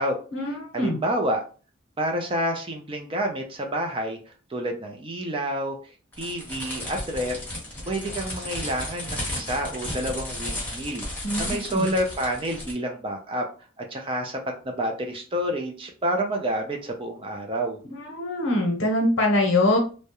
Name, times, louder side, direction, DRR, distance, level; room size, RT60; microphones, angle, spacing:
voice 1, 0.5-1.4 2.0-4.2 4.5-5.8 6.2-7.4 7.9-11.0 11.4-13.4 13.8-14.4 14.6-17.8, right 1 dB, 25° right, 3 dB, 0.4 m, -28 dB
sound 1, 6.1-12.7, left 1 dB, 10° left, 0.8 m, -34 dB
voice 2, 11.2-11.9 18.1-19.8, left 1 dB, 65° left, 0 dB, 0.8 m, -23 dB
2.3 x 2.0 x 2.8 m, 0.37 s
head